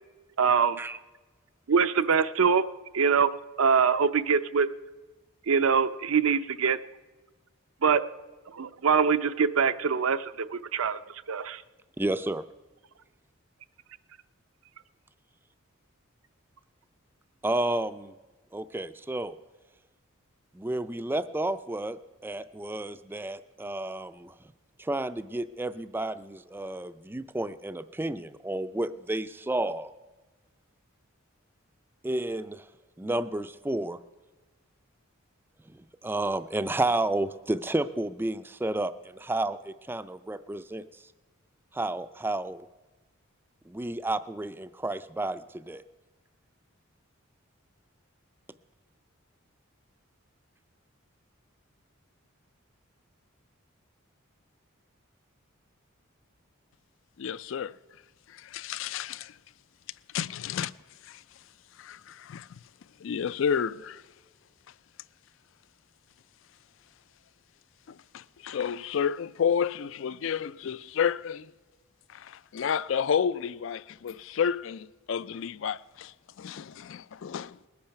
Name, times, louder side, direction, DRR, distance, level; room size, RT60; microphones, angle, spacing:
voice 1, 0.4-0.8 1.7-2.7 2.9-3.3 3.6-4.7 5.5-6.8 7.8-8.0 8.5-11.0 11.3-11.6, right 6 dB, 75° right, 0.6 m, -23 dB
voice 2, 12.0-12.4 17.4-18.1 18.5-19.4 20.5-24.3 24.8-29.9 32.0-32.6 33.0-34.0 36.0-40.8 41.7-42.7 43.7-45.8, right 2 dB, 10° right, 0.4 m, -31 dB
voice 3, 57.2-57.7 58.3-59.3 60.1-60.7 61.1-61.2 61.8-62.5 63.0-64.0 68.1-71.5 72.1-77.6, left 7 dB, 60° left, 0.4 m, -31 dB
20.5 x 8.7 x 5.8 m
head